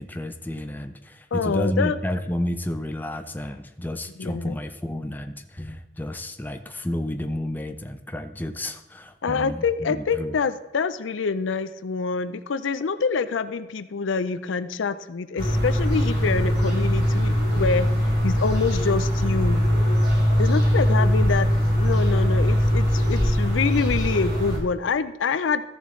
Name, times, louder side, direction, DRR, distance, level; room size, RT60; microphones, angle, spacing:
voice 1, 0.0-10.4, left 1 dB, 10° left, 7 dB, 0.5 m, -31 dB
voice 2, 1.3-2.0 4.2-4.6 9.2-19.6 20.4-21.5 21.8-25.6, left 5 dB, 85° left, 13 dB, 0.5 m, -26 dB
sound 1, 15.4-24.6, equal, 55° right, 3.5 m, -21 dB
14.0 x 7.1 x 3.2 m, 1.0 s
head